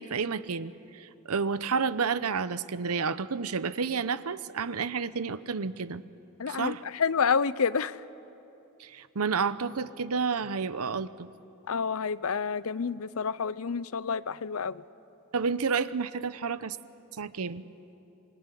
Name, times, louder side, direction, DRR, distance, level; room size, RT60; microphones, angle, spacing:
voice 1, 0.0-6.0 6.5-6.8 8.8-11.3 15.3-16.8 17.2-17.6, right 5 dB, 85° right, 15 dB, 0.8 m, -30 dB
voice 2, 6.4-8.0 11.7-14.8, left 6 dB, 70° left, 17 dB, 0.6 m, -29 dB
25.5 x 21.5 x 10.0 m, 2.9 s
head